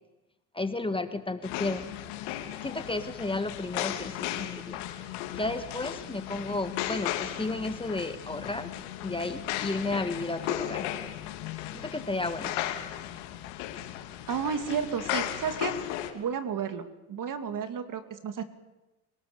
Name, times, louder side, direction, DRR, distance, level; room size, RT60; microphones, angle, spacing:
voice 1, 0.5-1.9 2.6-4.8 5.4-8.7 9.0-10.9 11.7-12.5, left 2 dB, 10° left, 9 dB, 1.6 m, -33 dB
sound 1, 1.4-16.1, left 12 dB, 80° left, 3.0 m, -36 dB
voice 2, 14.3-15.8 16.1-18.4, right 7 dB, 45° right, 9 dB, 2.8 m, -32 dB
30.0 x 19.0 x 7.1 m, 1.0 s
supercardioid pair, 90°, 43 cm